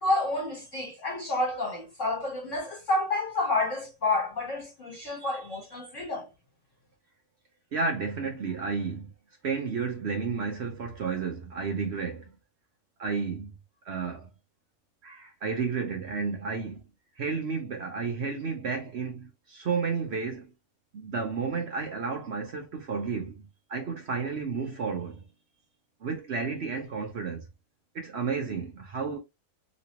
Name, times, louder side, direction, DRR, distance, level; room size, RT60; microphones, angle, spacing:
voice 1, 0.0-6.3, left 2 dB, 45° left, 1.3 m, -29 dB
voice 2, 7.7-9.1 9.4-12.3 13.0-13.5 13.9-14.3 15.0-16.8 17.2-20.5 20.9-23.3 23.7-25.2 26.0-27.4 27.9-29.2, right 5 dB, 70° right, 0.6 m, -32 dB
3.0 x 3.0 x 2.9 m
omnidirectional pair, 2.1 m